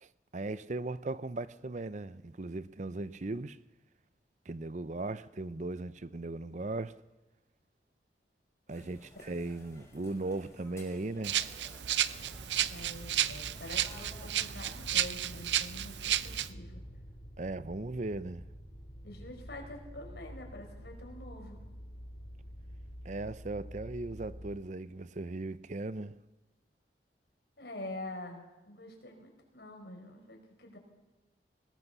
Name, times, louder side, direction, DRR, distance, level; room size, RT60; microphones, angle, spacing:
voice 1, 0.0-3.6 4.5-7.0 8.7-11.4 17.4-18.4 23.0-26.2, right 2 dB, 40° right, 0.6 m, -38 dB
sound 1, 8.7-15.2, left 1 dB, 15° left, 6.0 m, -56 dB
Rattle (instrument), 11.2-16.5, right 11 dB, 85° right, 0.7 m, -32 dB
sound 2, 12.1-24.6, equal, 40° left, 5.3 m, -48 dB
voice 2, 12.7-16.8 19.0-21.6 27.6-30.8, left 1 dB, 65° left, 5.5 m, -46 dB
21.5 x 19.5 x 7.0 m
head